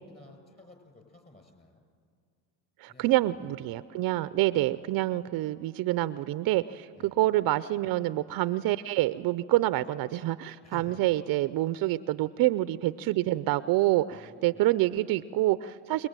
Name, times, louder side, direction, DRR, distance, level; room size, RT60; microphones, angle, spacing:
voice 1, 0.1-1.8 2.9-3.5 4.5-4.9 6.9-7.2 10.6-11.0 14.1-14.7, left 3 dB, 20° left, 6 dB, 6.4 m, -53 dB
voice 2, 2.8-16.1, right 16 dB, 50° right, 15 dB, 0.7 m, -27 dB
28.0 x 20.0 x 9.1 m, 2.2 s
supercardioid pair, 95°, 45 cm